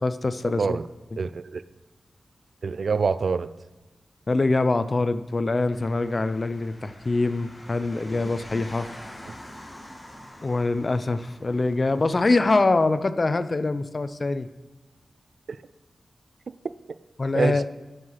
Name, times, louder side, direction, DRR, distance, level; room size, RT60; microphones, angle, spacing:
voice 1, 0.0-0.8 4.3-8.9 10.4-14.5 17.2-17.6, left 3 dB, 45° left, 12 dB, 0.5 m, -24 dB
voice 2, 1.2-1.6 2.6-3.5 17.3-17.7, right 5 dB, 70° right, 14 dB, 0.4 m, -25 dB
sound 1, 5.7-12.6, left 1 dB, 20° left, 2.3 m, -46 dB
sound 2, 8.0-12.8, right 2 dB, 45° right, 2.3 m, -48 dB
12.0 x 4.8 x 5.7 m, 1.1 s
cardioid pair, 65°, 0 cm